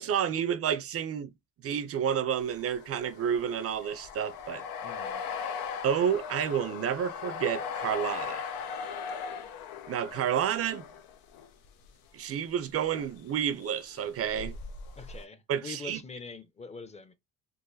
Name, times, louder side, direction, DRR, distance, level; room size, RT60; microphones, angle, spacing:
voice 1, 0.0-1.3 1.6-4.6 5.8-8.5 9.9-10.8 12.1-14.6 15.5-16.0, right 8 dB, 45° right, 0.5 m, -30 dB
sound 1, 2.4-11.9 12.8-13.3 13.6-15.2, left 6 dB, 90° left, 0.7 m, -39 dB
voice 2, 4.8-5.2 15.0-17.1, left 4 dB, 20° left, 0.6 m, -44 dB
3.9 x 2.5 x 2.6 m
cardioid pair, 120°, 34 cm